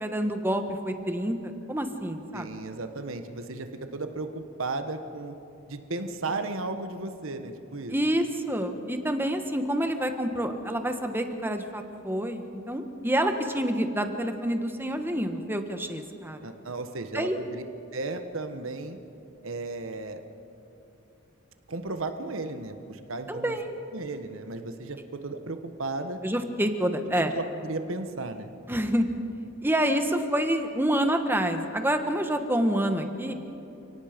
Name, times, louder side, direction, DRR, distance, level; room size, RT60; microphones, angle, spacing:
voice 1, 0.0-2.5 7.9-16.4 17.1-17.4 23.3-23.7 26.2-27.3 28.7-29.1 29.6-33.3, right 1 dB, 10° right, 6 dB, 1.3 m, -27 dB
voice 2, 2.3-5.3 5.7-8.0 16.4-17.6 17.9-19.0 19.4-20.2 21.7-23.6 23.9-26.2 27.3-28.5, right 3 dB, 65° right, 8 dB, 1.2 m, -35 dB
29.5 x 18.0 x 5.2 m, 2.9 s
head